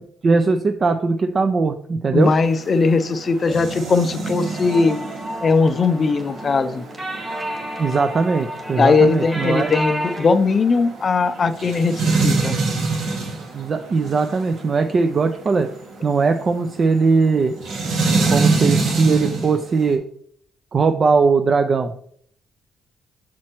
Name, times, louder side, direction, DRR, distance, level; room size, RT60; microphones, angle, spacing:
voice 1, 0.2-2.3 7.8-9.7 13.5-15.7 16.0-17.5 18.3-20.0 20.7-21.9, right 4 dB, 40° right, 7 dB, 0.4 m, -19 dB
voice 2, 2.1-5.0 5.4-6.8 8.8-12.6, left 4 dB, 40° left, 12 dB, 0.4 m, -19 dB
sound 1, 2.2-19.9, right 3 dB, 80° right, 1.7 m, -26 dB
sound 2, 4.4-10.3, right 1 dB, 20° right, 1.7 m, -31 dB
7.4 x 4.3 x 2.9 m, 0.63 s
cardioid pair, 90°, 0 cm